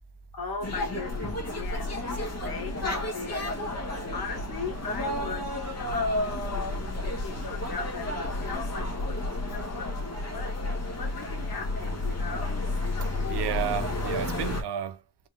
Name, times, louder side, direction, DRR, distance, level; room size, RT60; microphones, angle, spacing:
voice 1, 0.3-10.5 11.0-12.6, left 4 dB, 65° left, 2.1 m, -39 dB
sound 1, 0.6-14.6, left 2 dB, 40° left, 1.7 m, -31 dB
voice 2, 13.0-15.0, right 10 dB, 80° right, 0.7 m, -32 dB
4.4 x 3.7 x 2.5 m
wide cardioid pair, 145°, 40 cm